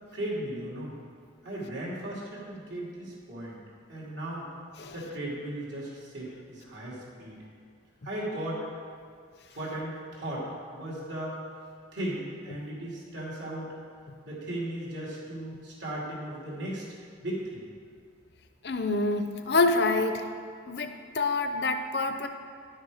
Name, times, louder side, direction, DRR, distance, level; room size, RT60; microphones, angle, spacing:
voice 1, 0.1-0.9 1.4-3.6 3.9-4.5 4.9-7.4 8.0-8.6 9.5-11.4 11.9-13.8 14.2-16.8 17.2-17.7, right 1 dB, 70° right, -5 dB, 2.7 m, -36 dB
voice 2, 18.6-20.2 20.7-22.3, left 3 dB, 55° left, 7 dB, 0.6 m, -27 dB
10.5 x 6.6 x 4.9 m, 2.2 s
head